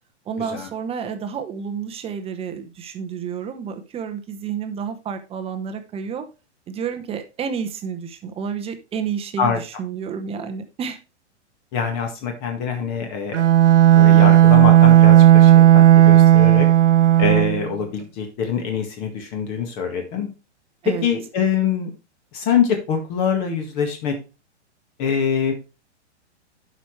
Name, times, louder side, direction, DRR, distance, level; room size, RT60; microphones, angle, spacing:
voice 1, 0.3-6.2 6.7-11.0 20.8-21.1, right 7 dB, 15° right, 7 dB, 0.8 m, -30 dB
voice 2, 11.7-13.4 13.9-16.7 17.2-20.3 21.0-21.9 22.3-24.2 25.0-25.5, left 6 dB, 40° left, 4 dB, 1.8 m, -24 dB
Bowed string instrument, 13.3-17.7, right 12 dB, 90° right, 0.8 m, -12 dB
11.5 x 5.0 x 3.2 m, 0.30 s
hypercardioid pair, 135°, 35 cm